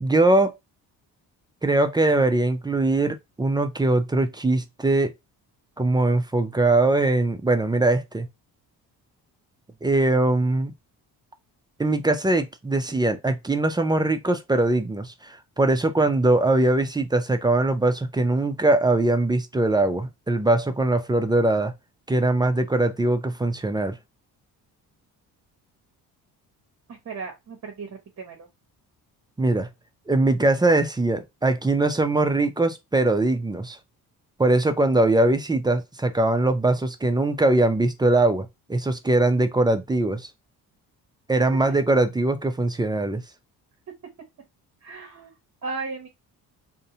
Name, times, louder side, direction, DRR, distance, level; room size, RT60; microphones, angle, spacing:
voice 1, 0.0-0.5 1.6-5.1 5.8-8.3 9.8-10.7 11.8-21.7 22.1-24.0 29.4-29.7 30.1-33.8 34.4-40.3 41.3-43.2, right 2 dB, 10° right, 0.3 m, -21 dB
voice 2, 27.0-28.5 44.8-45.3 45.6-46.1, right 4 dB, 45° right, 0.8 m, -35 dB
2.6 x 2.1 x 2.7 m
cardioid pair, 80°, 39 cm